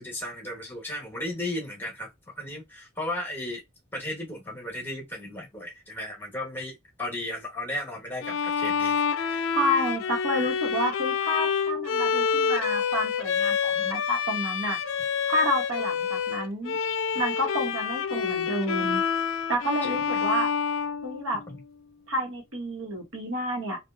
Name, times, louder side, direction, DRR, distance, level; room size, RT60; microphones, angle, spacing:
voice 1, 0.0-3.6 3.9-9.6 10.3-10.5 19.8-20.3 21.5-21.6, left 1 dB, 10° left, 1.1 m, -35 dB
Bowed string instrument, 8.2-21.7, left 6 dB, 70° left, 0.4 m, -28 dB
voice 2, 9.5-14.8 15.3-16.8 17.1-19.0 19.5-20.5 21.0-21.4 22.1-23.8, equal, 85° right, 1.1 m, -29 dB
3.1 x 2.4 x 2.3 m
head